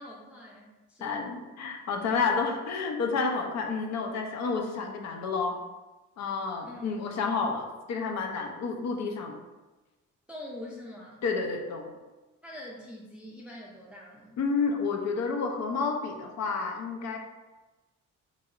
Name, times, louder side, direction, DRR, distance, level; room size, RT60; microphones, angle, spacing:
voice 1, 0.0-1.2 6.6-7.0 10.3-11.2 12.4-14.4, left 1 dB, 5° right, -4 dB, 0.4 m, -44 dB
voice 2, 1.0-5.6 6.2-9.4 11.2-11.9 14.4-17.2, left 4 dB, 60° left, 2 dB, 0.5 m, -30 dB
3.0 x 2.6 x 2.4 m, 1.1 s
cardioid pair, 90°, 30 cm